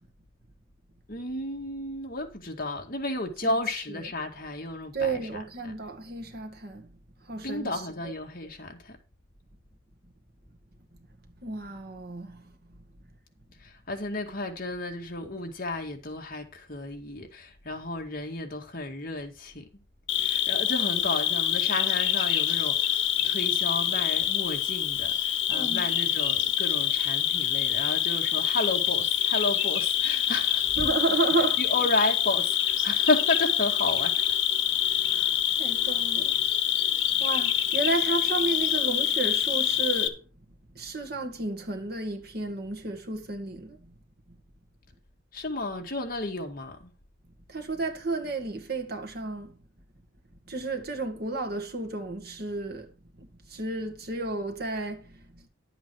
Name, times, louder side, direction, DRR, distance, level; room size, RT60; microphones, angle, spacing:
voice 1, 1.1-5.7 7.4-9.0 13.6-19.7 20.2-23.0 23.2-30.8 31.6-34.2 45.3-46.9, left 2 dB, 45° left, 2.1 m, -32 dB
voice 2, 3.4-4.1 4.9-6.9 7.2-8.1 11.4-12.5 23.2-23.3 25.5-25.9 30.7-31.7 35.1-36.5 37.1-40.3 40.7-43.9 47.5-49.6 50.5-55.5, right 3 dB, 50° right, 2.0 m, -32 dB
Cricket, 20.1-40.1, left 10 dB, 70° left, 1.5 m, -26 dB
11.5 x 8.0 x 4.7 m
head